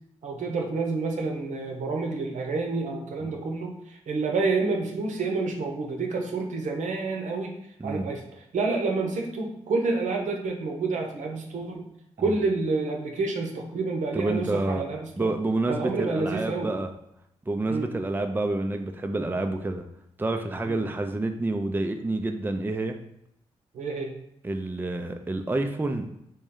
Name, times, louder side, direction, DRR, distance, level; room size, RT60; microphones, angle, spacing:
voice 1, 0.2-11.9 12.2-15.3 15.7-16.7 17.7-17.9 20.7-20.8 23.7-24.1, right 3 dB, 70° right, 1 dB, 0.8 m, -29 dB
voice 2, 14.1-14.8 15.2-16.9 17.5-19.8 20.2-23.0 24.4-26.1, right 2 dB, 15° right, 5 dB, 0.5 m, -28 dB
3.1 x 3.0 x 3.7 m, 0.78 s
supercardioid pair, 40°, 13 cm